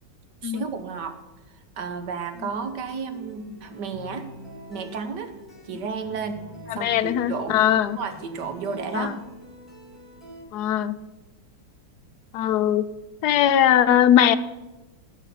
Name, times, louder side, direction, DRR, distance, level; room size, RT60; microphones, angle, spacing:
voice 1, 0.4-1.2 1.8-4.3 4.7-5.3 5.6-6.4 6.7-9.1, right 5 dB, 70° right, 8 dB, 1.7 m, -32 dB
sound 1, 2.4-10.4, equal, ahead, 3.4 m, -45 dB
voice 2, 6.7-8.0 8.9-9.1 10.5-10.9 12.3-12.8 13.2-14.4, left 10 dB, 70° left, 12 dB, 1.0 m, -20 dB
11.0 x 5.7 x 8.4 m, 1.1 s
omnidirectional pair, 2.0 m